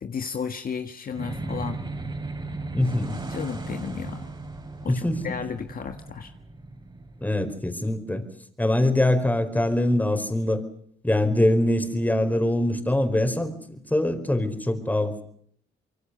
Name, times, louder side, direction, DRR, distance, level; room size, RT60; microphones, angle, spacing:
voice 1, 0.0-1.8 3.3-4.3 4.8-6.3, left 6 dB, 45° left, 7 dB, 1.7 m, -33 dB
sound 1, 1.1-7.7, right 2 dB, 25° right, 5.0 m, -36 dB
voice 2, 2.7-3.2 4.9-5.2 7.2-8.2 8.6-10.6 11.0-15.2, left 1 dB, 10° left, 7 dB, 4.6 m, -23 dB
26.0 x 23.5 x 6.8 m, 0.66 s
cardioid pair, 90°, 20 cm